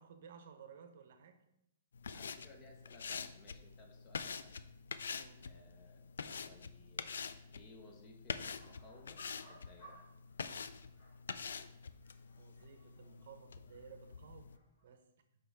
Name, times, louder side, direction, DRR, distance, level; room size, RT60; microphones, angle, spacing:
voice 1, 0.0-1.4 5.1-5.4 12.4-14.5 14.8-15.0, right 6 dB, 50° right, 8 dB, 0.8 m, -56 dB
sound 1, 1.9-14.6, left 5 dB, 90° left, 0.4 m, -46 dB
voice 2, 2.1-4.5 5.4-7.1 7.5-10.0, left 2 dB, 20° left, 2 dB, 0.8 m, -60 dB
sound 2, 8.6-10.4 10.7-14.2 14.5-14.9, right 1 dB, 35° left, 2.6 m, -62 dB
6.7 x 5.3 x 3.5 m, 0.84 s
hypercardioid pair, 170°, 0 cm